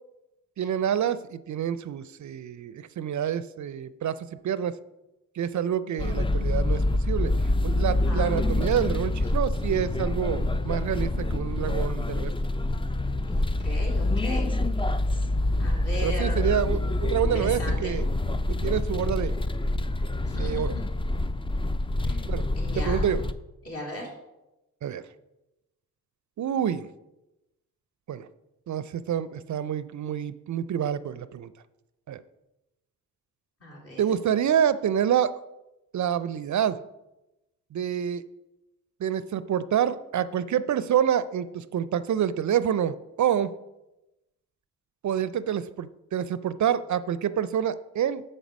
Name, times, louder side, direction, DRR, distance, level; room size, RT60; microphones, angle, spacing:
voice 1, 0.6-4.8 5.4-7.3 7.6-12.3 16.0-18.1 18.5-19.4 20.3-20.7 22.3-22.4 22.8-23.2 24.8-25.0 26.4-26.9 28.1-28.3 28.7-31.5 32.1-32.2 34.0-35.3 35.9-36.8 37.7-38.3 39.0-43.5 45.0-48.2, right 9 dB, 55° right, 16 dB, 0.5 m, -27 dB
sound 1, 6.0-23.3, left 2 dB, 15° left, 0.5 m, -26 dB
voice 2, 8.0-8.7 13.2-14.5 15.6-16.5 17.3-17.9 20.2-20.9 22.0-23.1 23.6-24.1 33.6-34.0, left 1 dB, 40° left, -1 dB, 2.8 m, -38 dB
6.5 x 5.1 x 6.2 m, 0.96 s
supercardioid pair, 45°, 35 cm